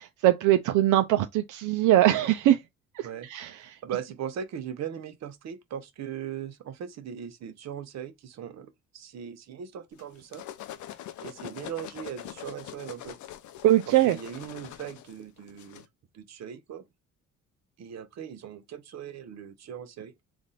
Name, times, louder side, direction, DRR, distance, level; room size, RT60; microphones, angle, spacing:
voice 1, 0.2-2.6 2.9-3.8 13.6-14.2, right 13 dB, 80° right, 0.5 m, -22 dB
voice 2, 3.6-10.4 11.2-13.2 14.0-15.8 16.1-16.8 17.8-20.1, right 8 dB, 60° right, 0.9 m, -39 dB
sound 1, 10.0-15.9, left 12 dB, 75° left, 0.7 m, -43 dB
3.5 x 2.5 x 4.1 m
cardioid pair, 100°, 30 cm